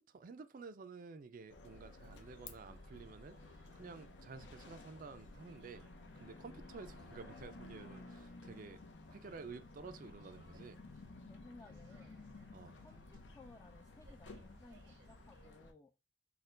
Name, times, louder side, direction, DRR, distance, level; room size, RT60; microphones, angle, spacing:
voice 1, 0.0-5.9 6.2-8.8 9.1-10.8 12.5-12.8, right 4 dB, 50° right, 0.4 m, -52 dB
sound 1, 1.5-15.7, left 2 dB, 85° left, 0.7 m, -54 dB
sound 2, 2.1-15.5, right 3 dB, 75° right, 0.8 m, -71 dB
voice 2, 11.3-12.2 12.6-15.9, left 3 dB, 20° left, 0.3 m, -59 dB
4.3 x 2.2 x 3.7 m
head